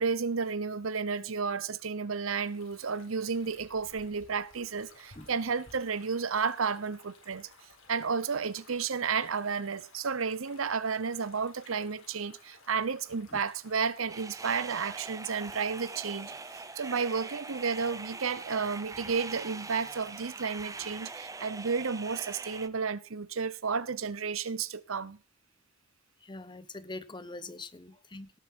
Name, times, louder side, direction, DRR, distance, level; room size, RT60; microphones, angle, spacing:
voice 1, 0.0-7.5 7.9-25.2, right 5 dB, 80° right, 0.8 m, -32 dB
sound 1, 2.4-21.0, left 3 dB, 75° left, 4.5 m, -58 dB
sound 2, 14.1-22.7, right 3 dB, 15° right, 0.7 m, -43 dB
voice 2, 26.2-28.4, left 2 dB, 25° left, 1.0 m, -43 dB
18.0 x 7.5 x 4.4 m
head